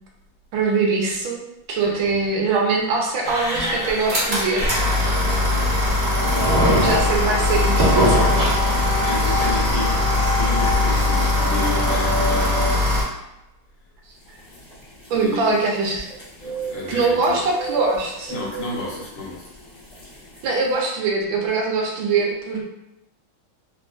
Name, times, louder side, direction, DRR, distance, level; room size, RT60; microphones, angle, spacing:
voice 1, 0.5-1.4 1.7-4.7 6.6-8.3 15.1-16.1 16.9-18.3 20.4-22.6, right 4 dB, 80° right, 0 dB, 1.3 m, -22 dB
voice 2, 1.8-2.2 5.2-5.8 8.7-10.1 10.3-12.9 15.1-15.5 16.4-17.5 18.3-19.4, left 2 dB, 65° left, -5 dB, 1.4 m, -31 dB
sound 1, 3.2-13.0, left 1 dB, 35° right, 0.8 m, -20 dB
sound 2, 6.1-12.7, left 3 dB, 90° left, 1.5 m, -28 dB
sound 3, 14.2-20.8, right 6 dB, 25° left, 0.7 m, -38 dB
3.6 x 2.4 x 2.4 m, 0.89 s
omnidirectional pair, 2.3 m